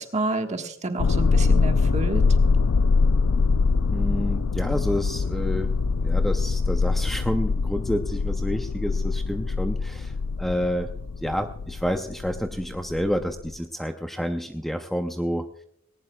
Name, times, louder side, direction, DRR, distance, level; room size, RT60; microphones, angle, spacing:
voice 1, 0.0-2.2, right 2 dB, 35° right, 5 dB, 1.4 m, -29 dB
sound 1, 1.0-13.5, left 4 dB, 90° left, 0.4 m, -23 dB
voice 2, 3.9-5.7 6.0-10.1 10.4-10.9 11.2-15.5, equal, ahead, 6 dB, 0.5 m, -29 dB
19.0 x 18.5 x 2.3 m, 0.70 s
head